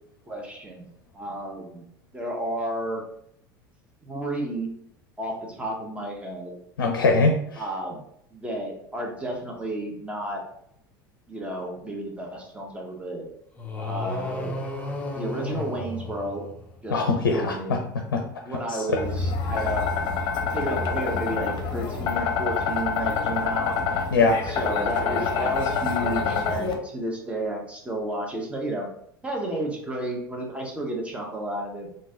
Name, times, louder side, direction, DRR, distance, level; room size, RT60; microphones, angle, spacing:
voice 1, 0.3-0.9 1.1-1.9 2.1-3.0 4.0-4.7 5.2-6.6 7.6-8.0 8.3-10.4 11.3-13.3 13.8-14.6 15.1-16.5 16.8-17.0 17.3-17.8 18.4-19.9 20.5-23.8 24.4-28.9 29.2-31.9, right 1 dB, 10° right, 0 dB, 1.1 m, -32 dB
voice 2, 6.8-7.6 16.9-17.5 18.1-18.2 18.7-19.0 24.1-24.4, left 3 dB, 70° left, 4 dB, 0.6 m, -21 dB
sound 1, 13.6-16.9, left 2 dB, 10° left, 0.7 m, -33 dB
sound 2, 18.9-26.7, left 5 dB, 40° left, 0.8 m, -27 dB
3.8 x 2.6 x 3.7 m, 0.70 s
figure-of-eight pair, 75°, 11 cm